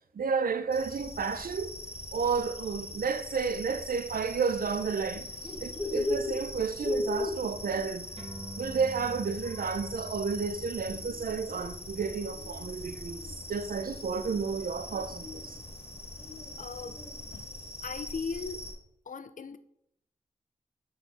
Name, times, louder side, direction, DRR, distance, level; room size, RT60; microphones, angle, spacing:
voice 1, 0.1-1.7 2.1-5.3 5.6-8.1 8.6-13.2 13.5-15.6, right 5 dB, 80° right, 0.5 m, -31 dB
sound 1, 0.7-18.7, left 1 dB, 45° left, 1.7 m, -42 dB
Bird, 5.3-17.4, left 2 dB, 15° left, 0.9 m, -38 dB
sound 2, 8.2-15.0, right 1 dB, 45° right, 1.4 m, -48 dB
voice 2, 16.6-17.0 17.3-17.5 17.8-18.7 19.1-19.6, left 5 dB, 60° left, 0.5 m, -38 dB
6.6 x 4.6 x 4.1 m
wide cardioid pair, 65°, 15 cm